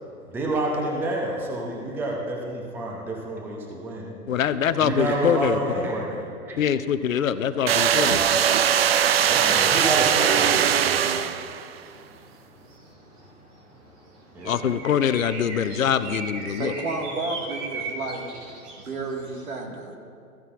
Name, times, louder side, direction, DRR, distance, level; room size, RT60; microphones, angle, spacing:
voice 1, 0.3-4.1 4.7-6.6 9.3-11.2 14.3-14.7, right 1 dB, 5° right, -1 dB, 0.6 m, -29 dB
voice 2, 4.3-5.9 6.6-8.5 14.4-16.7, left 8 dB, 65° left, 13 dB, 0.6 m, -24 dB
sound 1, 7.7-11.7, right 9 dB, 45° right, 0.4 m, -20 dB
sound 2, 11.8-19.4, right 3 dB, 30° right, 2.0 m, -39 dB
voice 3, 16.5-18.3 18.9-19.9, right 3 dB, 70° right, 1 dB, 1.9 m, -31 dB
14.5 x 9.4 x 2.5 m, 2.5 s
figure-of-eight pair, 120°, 44 cm